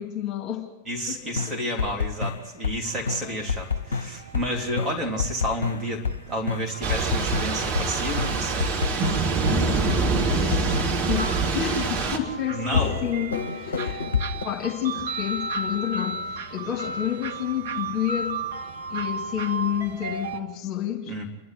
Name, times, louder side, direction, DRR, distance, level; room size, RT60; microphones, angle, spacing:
voice 1, 0.0-0.7 1.1-1.6 9.5-14.0 14.4-18.4 18.9-21.1, left 10 dB, 35° left, 2 dB, 2.6 m, -30 dB
voice 2, 0.9-9.1 12.5-12.9 21.1-21.2, equal, 20° right, 2 dB, 3.5 m, -31 dB
sound 1, 1.4-2.8 3.1-4.5 4.8-7.9 8.2-9.6 9.9-11.2 12.7-14.4, left 5 dB, 70° left, 0.8 m, -28 dB
sound 2, 2.8-20.4, right 3 dB, 60° right, 1.4 m, -36 dB
Thunder / Rain, 6.8-12.2, right 4 dB, 40° right, 2.7 m, -25 dB
28.0 x 11.5 x 9.8 m, 1.0 s
figure-of-eight pair, 90°, 0 cm